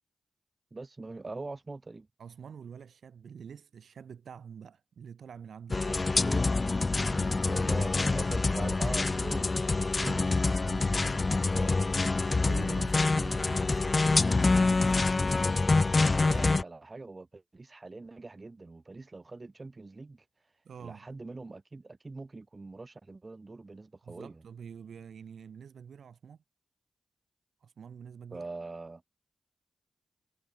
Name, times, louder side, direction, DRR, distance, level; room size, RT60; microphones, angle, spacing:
voice 1, 0.7-2.1 5.9-6.5 7.4-9.5 11.5-11.7 16.2-20.2 20.8-24.4 28.3-29.0, right 3 dB, 35° right, 6.7 m, -43 dB
voice 2, 2.2-5.9 7.0-9.3 10.0-11.8 12.1-15.5 16.2-16.5 20.6-21.1 24.0-26.4 27.6-28.5, right 7 dB, 80° right, 2.6 m, -47 dB
sound 1, 5.7-16.6, left 3 dB, 40° left, 0.5 m, -26 dB
cardioid pair, 50°, 0 cm